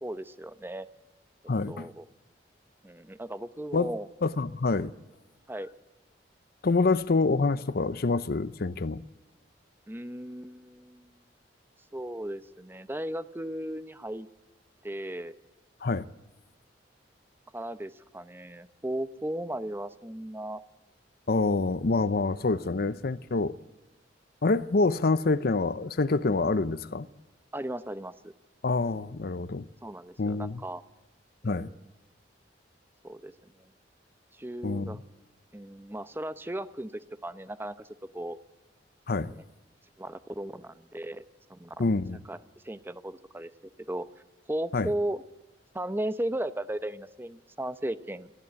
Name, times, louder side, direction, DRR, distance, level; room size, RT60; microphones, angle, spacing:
voice 1, 0.0-0.9 1.7-2.0 2.8-4.1 5.5-5.7 9.9-11.1 11.9-14.3 14.8-15.3 17.5-20.6 27.5-28.3 29.8-30.8 31.4-31.8 33.0-33.7 34.4-35.0 35.5-37.9 38.1-38.4 40.0-41.2 41.5-41.9 42.3-42.4 42.6-43.5 43.9-44.1 44.5-45.2 45.7-48.3, right 1 dB, 10° right, 0.8 m, -36 dB
voice 2, 1.5-1.9 3.7-3.9 4.2-4.9 6.6-9.0 15.8-16.0 21.3-23.6 24.4-27.1 28.6-29.7 30.2-30.6 31.4-31.7 34.6-35.0 39.1-39.3 41.8-42.2 44.7-44.9, left 3 dB, 55° left, 0.7 m, -26 dB
28.0 x 11.5 x 9.4 m
head